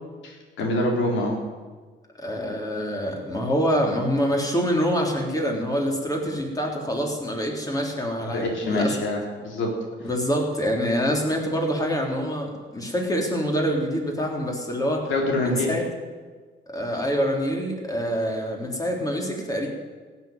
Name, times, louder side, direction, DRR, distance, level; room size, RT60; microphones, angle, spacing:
voice 1, 0.2-1.4 8.2-9.7 15.1-15.7, left 1 dB, 75° left, 0 dB, 3.8 m, -25 dB
voice 2, 2.2-9.0 10.0-15.1 15.4-15.8 16.7-19.7, equal, 20° left, 0 dB, 3.8 m, -26 dB
15.5 x 7.4 x 9.4 m, 1.4 s
cardioid pair, 90°, 20 cm